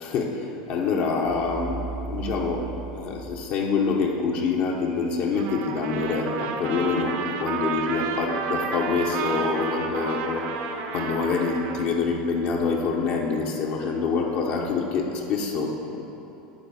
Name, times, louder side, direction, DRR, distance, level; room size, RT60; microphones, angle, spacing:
voice 1, 0.0-16.0, left 4 dB, 55° left, 0 dB, 1.0 m, -26 dB
sound 1, 1.3-4.1, right 4 dB, 10° right, 0.7 m, -37 dB
Trumpet, 5.3-11.9, right 6 dB, 60° right, 0.8 m, -31 dB
10.0 x 4.0 x 7.0 m, 3.0 s
supercardioid pair, 125°, 4 cm